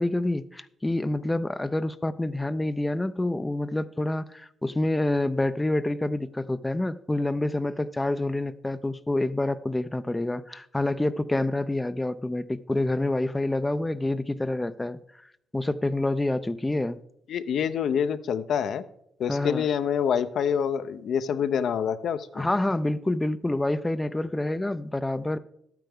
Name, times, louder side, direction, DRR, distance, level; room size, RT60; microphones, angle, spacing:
voice 1, 0.0-15.0 15.5-17.0 19.3-19.6 22.3-25.4, left 2 dB, 15° left, 0.3 m, -27 dB
voice 2, 17.3-18.8 19.2-22.5, left 7 dB, 65° left, 0.5 m, -26 dB
12.5 x 9.0 x 3.6 m
cardioid pair, 90°, 0 cm